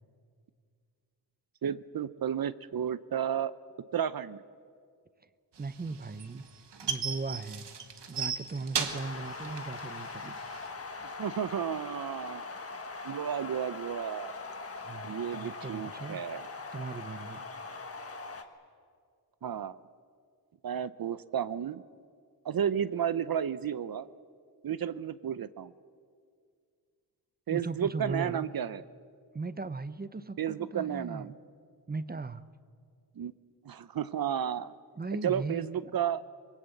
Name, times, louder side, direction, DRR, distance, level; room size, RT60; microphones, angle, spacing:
voice 1, 1.6-3.5 3.9-4.4 11.2-12.4 13.0-14.3 15.0-16.5 19.4-19.8 20.6-21.8 22.4-24.1 24.6-25.7 27.5-28.8 30.4-31.3 33.2-33.3 33.6-34.7 35.2-36.2, right 9 dB, 60° right, 16 dB, 0.7 m, -32 dB
voice 2, 5.6-6.4 6.8-7.7 8.1-10.4 14.8-16.2 16.7-17.5 27.5-28.5 29.3-31.3 31.9-32.4 35.0-35.9, right 3 dB, 25° right, 15 dB, 0.7 m, -38 dB
sound 1, 5.6-10.7, right 6 dB, 85° right, 1.7 m, -35 dB
sound 2, 8.8-18.4, left 3 dB, 35° left, 1.6 m, -41 dB
25.0 x 22.0 x 7.9 m, 2.2 s
wide cardioid pair, 130°, 41 cm